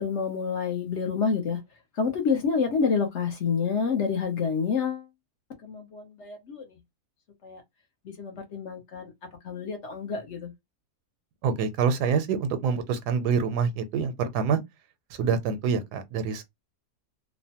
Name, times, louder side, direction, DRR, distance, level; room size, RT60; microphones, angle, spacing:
voice 1, 0.0-1.6 2.0-5.0 5.6-6.7 7.4-7.6 8.0-9.1 9.4-10.5, left 5 dB, 55° left, 0.9 m, -28 dB
voice 2, 11.4-14.6 15.2-16.4, right 6 dB, 85° right, 1.2 m, -26 dB
3.0 x 2.1 x 2.8 m
omnidirectional pair, 1.7 m